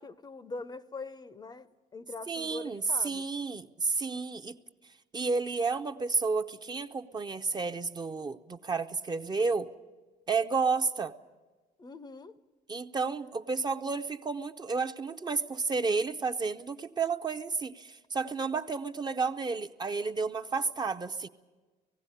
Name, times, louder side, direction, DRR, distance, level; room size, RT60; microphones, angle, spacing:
voice 1, 0.0-3.3 11.8-12.4, left 3 dB, 25° left, 0.6 m, -43 dB
voice 2, 2.3-4.6 5.1-9.7 10.3-11.1 12.7-21.3, right 4 dB, 25° right, 0.6 m, -31 dB
18.0 x 16.0 x 9.8 m
cardioid pair, 110°, 17 cm